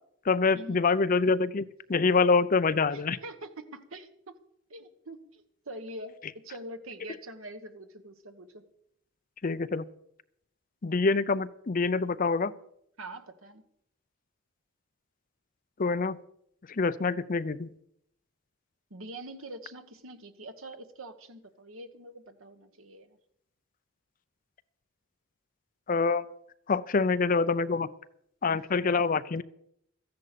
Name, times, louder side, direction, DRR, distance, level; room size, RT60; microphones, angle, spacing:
voice 1, 0.2-3.2 9.4-9.9 10.8-12.5 15.8-16.2 16.7-17.7 25.9-26.2 26.7-27.9 28.4-29.4, left 4 dB, 40° left, 14 dB, 0.5 m, -26 dB
voice 2, 2.9-4.3 4.7-8.6 13.0-13.6 18.9-23.2, right 1 dB, 70° right, 8 dB, 1.4 m, -44 dB
14.0 x 10.5 x 6.8 m, 0.73 s
head